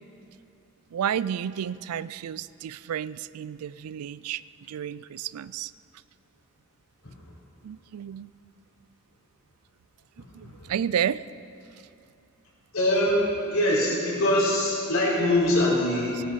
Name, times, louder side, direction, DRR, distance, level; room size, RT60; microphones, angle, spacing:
voice 1, 0.9-4.4 4.7-5.7 7.6-8.3 10.3-11.2, right 9 dB, 90° right, 18 dB, 0.4 m, -31 dB
voice 2, 12.7-16.2, left 1 dB, 70° left, -6 dB, 4.1 m, -23 dB
19.5 x 8.9 x 5.7 m, 2.7 s
head